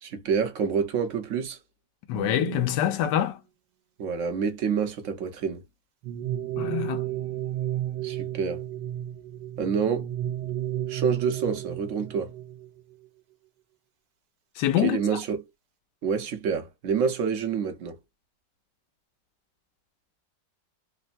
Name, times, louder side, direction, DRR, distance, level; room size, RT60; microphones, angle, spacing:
voice 1, 0.0-1.6 4.0-5.6 8.0-8.6 9.6-10.1 10.9-12.3 14.8-15.4 16.0-18.0, right 6 dB, 55° right, 1.0 m, -27 dB
voice 2, 2.1-3.4 6.6-7.1 14.6-15.0, left 11 dB, 80° left, 1.2 m, -25 dB
sound 1, 2.1-3.2 6.0-13.1, right 12 dB, 85° right, 1.4 m, -33 dB
3.4 x 2.1 x 2.5 m
omnidirectional pair, 1.9 m